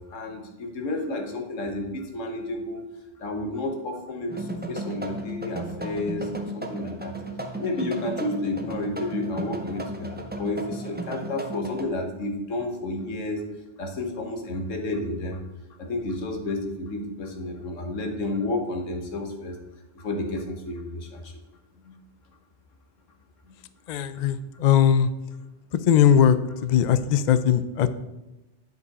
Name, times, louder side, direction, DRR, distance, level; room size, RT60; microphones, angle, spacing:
voice 1, 0.0-2.8 3.2-7.1 7.6-13.4 13.8-15.4 15.8-19.6 19.9-21.3 21.8-22.0, left 2 dB, 90° left, 3 dB, 1.6 m, -31 dB
sound 1, 4.3-11.8, right 1 dB, 15° right, 0.4 m, -34 dB
voice 2, 23.9-25.1 25.9-26.4 26.6-27.9, left 9 dB, 70° left, 13 dB, 0.4 m, -19 dB
9.3 x 5.4 x 4.1 m, 1.0 s
omnidirectional pair, 1.3 m